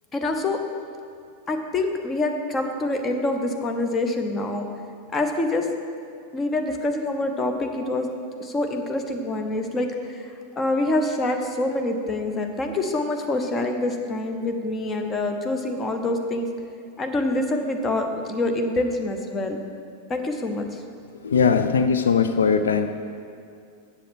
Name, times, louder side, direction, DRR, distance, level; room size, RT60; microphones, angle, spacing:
voice 1, 0.1-0.6 1.5-4.7 5.1-5.7 6.3-8.1 8.4-16.5 17.0-19.6 20.1-20.8, left 2 dB, 20° left, 4 dB, 0.9 m, -26 dB
voice 2, 21.2-22.9, left 6 dB, 70° left, 8 dB, 0.4 m, -20 dB
7.6 x 7.2 x 6.2 m, 2.4 s
figure-of-eight pair, 90°, 0 cm